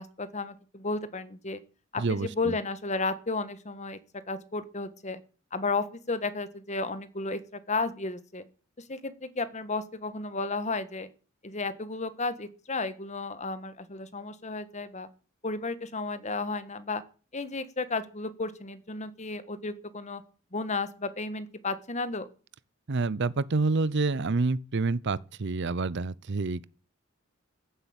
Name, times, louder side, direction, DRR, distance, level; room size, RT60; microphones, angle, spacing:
voice 1, 0.0-1.6 1.9-4.0 4.3-5.2 5.5-7.4 7.7-8.4 8.9-11.1 11.4-15.1 15.4-17.0 17.3-20.2 20.5-22.3, left 3 dB, 35° left, 1.4 m, -33 dB
voice 2, 2.0-2.5 22.9-26.7, right 3 dB, 55° right, 0.6 m, -28 dB
15.0 x 8.1 x 8.8 m
head